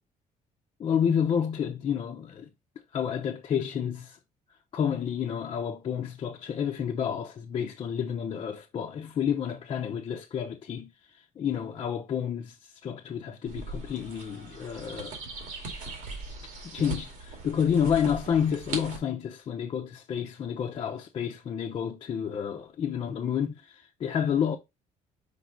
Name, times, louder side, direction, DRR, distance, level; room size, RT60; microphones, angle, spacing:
voice 1, 0.8-2.5 2.9-4.2 4.7-10.9 11.4-15.2 16.6-24.6, left 8 dB, 40° left, 0.7 m, -30 dB
sound 1, 13.4-19.0, right 3 dB, 85° right, 2.3 m, -39 dB
5.3 x 4.6 x 3.9 m
cardioid pair, 150°, 14 cm